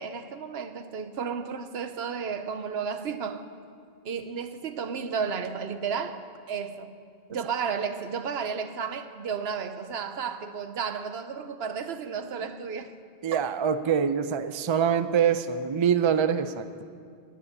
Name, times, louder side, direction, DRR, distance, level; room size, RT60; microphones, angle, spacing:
voice 1, 0.0-3.5 4.0-6.9 7.3-13.0 13.3-13.5, right 6 dB, 75° right, 1.0 m, -33 dB
voice 2, 13.2-16.8, right 7 dB, 40° right, 0.4 m, -25 dB
11.0 x 9.8 x 10.0 m
omnidirectional pair, 1.1 m